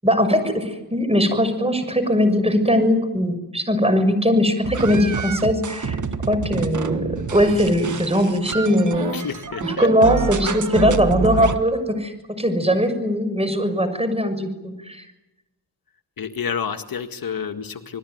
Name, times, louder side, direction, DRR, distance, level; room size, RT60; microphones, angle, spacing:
voice 1, 0.0-6.0 6.3-9.2 9.6-12.1 12.4-15.0, equal, 15° right, 10 dB, 6.6 m, -20 dB
sound 1, 4.6-11.6, right 5 dB, 45° right, 1.7 m, -28 dB
voice 2, 9.1-9.9 16.2-18.0, left 7 dB, 55° left, 6 dB, 1.9 m, -29 dB
28.0 x 20.5 x 9.5 m, 0.97 s
cardioid pair, 75°, 41 cm